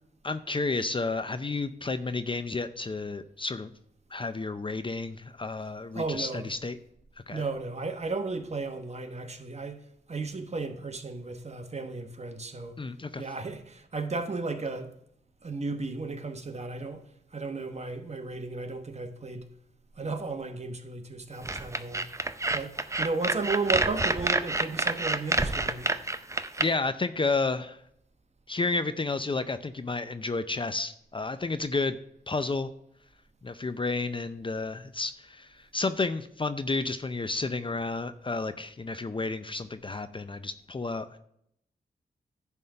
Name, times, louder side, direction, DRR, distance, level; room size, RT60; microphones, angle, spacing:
voice 1, 0.2-3.7 4.1-6.8 7.3-7.4 12.8-13.2 26.6-27.8 28.5-32.0 32.3-32.7 33.4-41.2, left 3 dB, 30° left, 0.5 m, -31 dB
voice 2, 5.9-6.5 7.3-12.8 13.2-15.0 15.4-19.5 19.9-22.1 22.5-25.9, right 3 dB, 40° right, 1.1 m, -34 dB
sound 1, 21.4-26.7, right 2 dB, 15° right, 0.6 m, -28 dB
10.5 x 3.6 x 6.7 m
cardioid pair, 60°, 18 cm